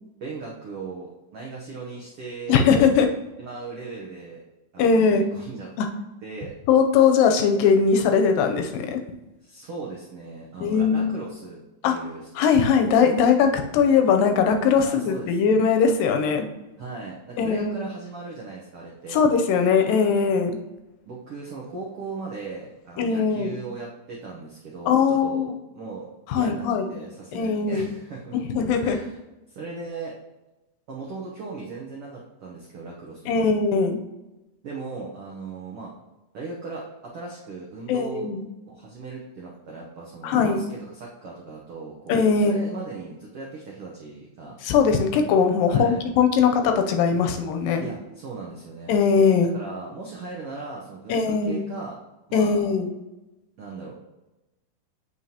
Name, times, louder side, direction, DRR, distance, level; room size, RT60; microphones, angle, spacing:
voice 1, 0.2-2.6 3.4-4.4 4.7-5.7 6.2-6.5 9.4-12.8 14.8-15.4 16.8-19.2 21.1-28.4 28.8-29.2 29.5-30.1 30.9-33.4 34.6-35.9 36.3-36.8 37.1-38.3 38.7-44.6 45.7-46.0 47.8-48.9 49.5-52.0 52.3-52.7 53.6-54.0, right 3 dB, 85° right, -3 dB, 1.2 m, -38 dB
voice 2, 2.5-3.1 4.8-5.2 5.8-5.9 6.7-9.0 10.6-11.2 11.8-12.0 12.4-16.5 17.4-17.8 19.1-20.6 23.0-23.6 24.9-25.5 26.3-26.9 27.3-27.9 28.5-29.0 33.3-34.0 37.9-38.5 40.2-40.6 42.1-42.6 44.6-47.9 48.9-49.5 51.1-51.6 52.3-52.9, left 6 dB, 85° left, 5 dB, 2.4 m, -20 dB
7.9 x 5.5 x 2.8 m, 1.0 s
omnidirectional pair, 4.0 m